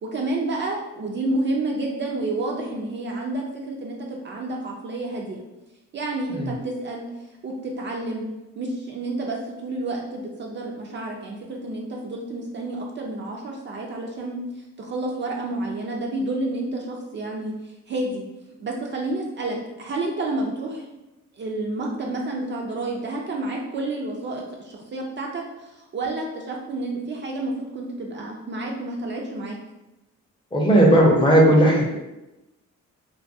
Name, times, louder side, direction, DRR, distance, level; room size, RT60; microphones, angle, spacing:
voice 1, 0.0-5.4 5.9-7.0 7.4-8.2 8.6-18.2 18.6-20.9 21.3-29.6, right 2 dB, 40° right, -1 dB, 0.4 m, -30 dB
voice 2, 30.5-32.1, right 1 dB, 15° left, -2 dB, 0.6 m, -16 dB
2.2 x 2.2 x 2.6 m, 0.96 s
cardioid pair, 90°, 30 cm